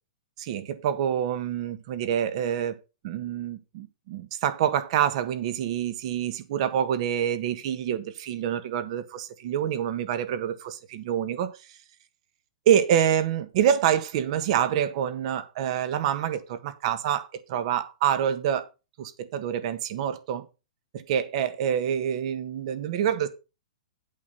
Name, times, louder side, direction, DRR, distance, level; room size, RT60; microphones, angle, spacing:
voice 1, 0.4-2.8 3.0-11.5 12.6-18.6 19.0-20.5 20.9-23.3, right 9 dB, 45° right, 1.4 m, -26 dB
8.4 x 6.1 x 5.7 m
hypercardioid pair, 145°, 4 cm